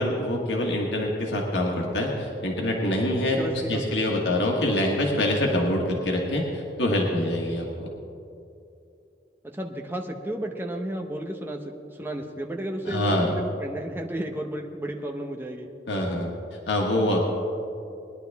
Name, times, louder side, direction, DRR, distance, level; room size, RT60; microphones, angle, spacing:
voice 1, 0.0-7.9 12.9-13.3 15.9-16.3 16.7-17.2, left 1 dB, 90° left, -1 dB, 1.6 m, -25 dB
voice 2, 3.4-4.2 9.5-11.6 11.9-15.7, right 1 dB, 15° right, 1 dB, 1.0 m, -33 dB
20.0 x 11.0 x 3.5 m, 2.6 s
head